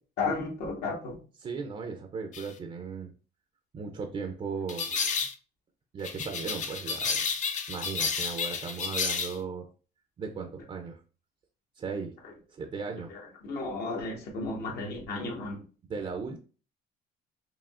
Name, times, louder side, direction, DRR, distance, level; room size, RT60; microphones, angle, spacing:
voice 1, 0.2-1.2 13.1-15.6, left 3 dB, 70° left, -1 dB, 1.4 m, -33 dB
voice 2, 1.4-3.1 3.7-5.0 5.9-9.7 10.2-11.0 11.8-12.1 12.5-13.1 15.9-16.4, right 5 dB, 35° right, 4 dB, 0.5 m, -37 dB
sound 1, 2.3-2.5 4.7-5.3 6.0-9.4, left 5 dB, 45° left, 0.6 m, -31 dB
4.8 x 2.8 x 2.5 m, 0.38 s
cardioid pair, 110°, 17 cm